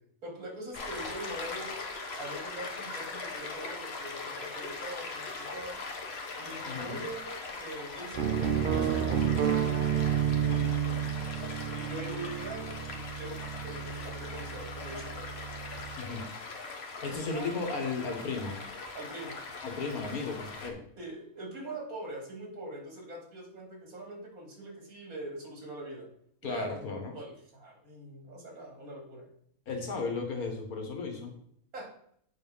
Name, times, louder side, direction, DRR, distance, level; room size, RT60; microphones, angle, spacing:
voice 1, 0.2-1.7 2.2-5.8 6.4-9.5 10.4-11.2 11.7-15.3 17.1-17.5 18.9-19.4 21.0-26.1 26.4-29.3 31.7-31.9, right 1 dB, 80° right, 0 dB, 2.7 m, -43 dB
Stream, 0.7-20.7, left 3 dB, 50° left, 1.3 m, -41 dB
voice 2, 6.7-7.0 16.0-16.2 17.0-18.6 19.6-20.8 26.4-27.1 29.7-31.3, left 4 dB, 85° left, 3 dB, 1.9 m, -35 dB
sound 1, 8.1-16.0, right 8 dB, 60° right, 0.5 m, -31 dB
8.4 x 4.2 x 5.5 m, 0.68 s
omnidirectional pair, 1.5 m